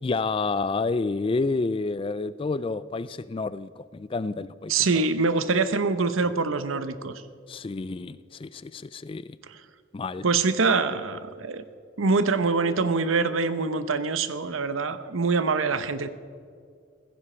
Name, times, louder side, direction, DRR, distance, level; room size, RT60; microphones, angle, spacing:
voice 1, 0.0-5.0 7.5-9.4 9.9-10.2, left 3 dB, 25° left, 16 dB, 0.3 m, -29 dB
voice 2, 4.7-7.1 9.5-9.6 10.2-11.6 12.0-16.1, right 4 dB, 80° right, 12 dB, 0.8 m, -24 dB
16.0 x 15.0 x 4.4 m, 2.2 s
head